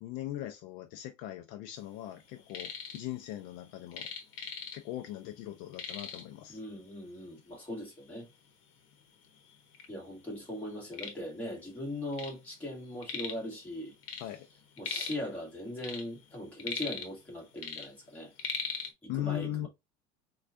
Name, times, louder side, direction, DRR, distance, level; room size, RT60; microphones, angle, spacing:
voice 1, 0.0-4.1 4.7-6.6 14.2-14.5 19.1-19.7, left 13 dB, 60° left, 0.5 m, -39 dB
sound 1, 2.3-3.0 3.3-5.1 5.4-5.5 5.7-6.4 7.2-7.3 7.8-7.9 8.6-8.7 9.0-9.9 10.3-12.4 12.7-13.5 13.8-15.3 15.7-17.3 17.6-18.9, left 6 dB, 85° left, 0.9 m, -39 dB
voice 2, 6.5-8.3 9.9-14.2 14.8-18.3 19.0-19.7, left 1 dB, 10° left, 1.6 m, -40 dB
4.3 x 2.3 x 2.5 m
cardioid pair, 145°, 16 cm